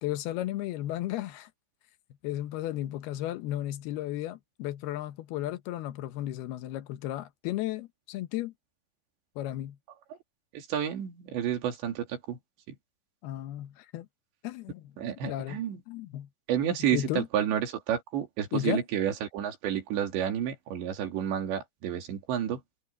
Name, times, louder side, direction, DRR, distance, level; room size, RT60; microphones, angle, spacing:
voice 1, 0.0-1.5 2.2-8.5 9.4-9.8 13.2-14.1 14.4-14.9 15.3-16.3 16.9-17.3 18.5-18.8, left 14 dB, 70° left, 2.8 m, -34 dB
voice 2, 10.5-12.4 15.0-15.8 16.5-22.6, right 9 dB, 75° right, 4.9 m, -30 dB
omnidirectional pair, 5.1 m